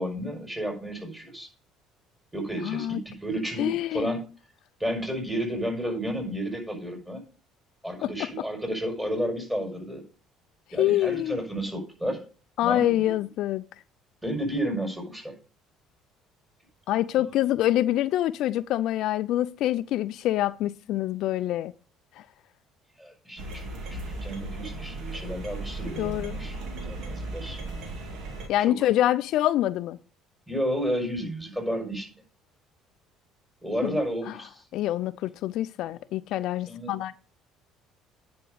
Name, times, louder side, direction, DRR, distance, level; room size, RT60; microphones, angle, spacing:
voice 1, 0.0-1.5 2.3-4.2 4.8-7.2 7.8-10.0 10.7-12.2 12.6-13.1 14.2-15.4 23.0-26.5 26.8-27.6 28.7-28.8 30.5-32.1 33.6-34.6 36.7-37.2, equal, 10° right, 5.6 m, -32 dB
voice 2, 2.6-3.0 3.6-4.1 8.0-8.3 10.8-11.4 12.6-13.7 16.9-21.7 22.2-22.3 26.0-26.4 28.5-30.0 33.8-34.0 34.3-34.4 34.7-37.1, left 13 dB, 65° left, 0.4 m, -26 dB
sound 1, 23.4-28.5, right 2 dB, 65° right, 2.4 m, -36 dB
9.8 x 5.1 x 6.8 m
hypercardioid pair, 65°, 0 cm